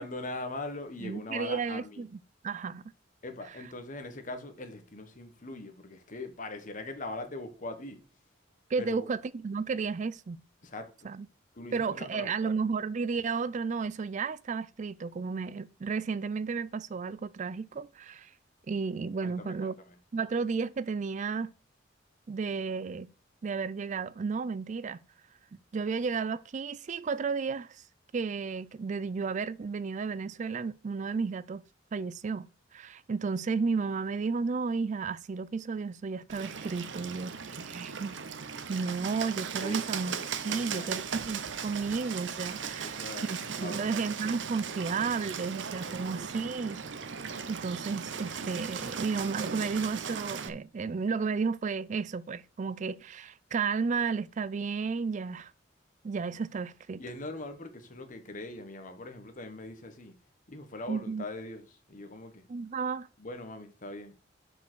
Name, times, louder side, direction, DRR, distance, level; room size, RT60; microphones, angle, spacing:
voice 1, 0.0-2.0 3.2-8.0 8.8-9.1 10.6-11.1 11.5-12.5 19.2-19.9 39.6-39.8 40.4-41.0 42.6-43.3 43.5-43.9 57.0-60.1 60.5-62.5 63.2-64.1, left 2 dB, 45° left, 1.4 m, -41 dB
voice 2, 1.0-2.1 2.4-2.8 8.7-10.4 11.0-11.3 11.7-18.3 18.7-19.7 20.1-21.5 22.3-23.1 23.4-25.0 25.7-27.8 28.1-31.6 31.9-38.2 38.7-40.2 40.4-46.8 47.5-55.5 56.0-57.0 60.9-61.2 62.5-63.1, right 5 dB, 40° right, 0.4 m, -33 dB
Bird, 36.3-50.5, right 6 dB, 65° right, 0.8 m, -37 dB
6.8 x 5.2 x 6.2 m
head